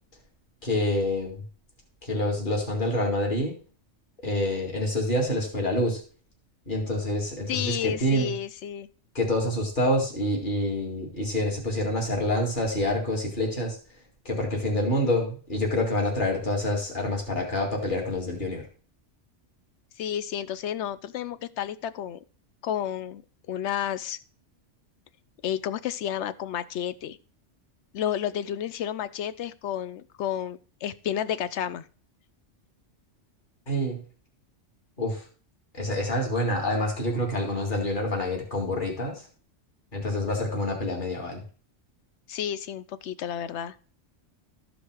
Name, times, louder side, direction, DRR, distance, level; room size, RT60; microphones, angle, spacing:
voice 1, 0.6-1.4 2.0-3.5 4.2-6.0 6.7-8.3 9.1-13.8 14.3-18.6 33.7-34.0 35.0-35.2 35.7-39.2 39.9-41.4, left 1 dB, 40° left, 0 dB, 2.4 m, -27 dB
voice 2, 7.5-8.9 20.0-22.2 22.6-23.2 23.5-24.2 25.4-27.2 27.9-31.8 42.3-43.7, left 10 dB, 70° left, 15 dB, 0.9 m, -31 dB
13.0 x 5.2 x 4.7 m, 0.40 s
omnidirectional pair, 1.2 m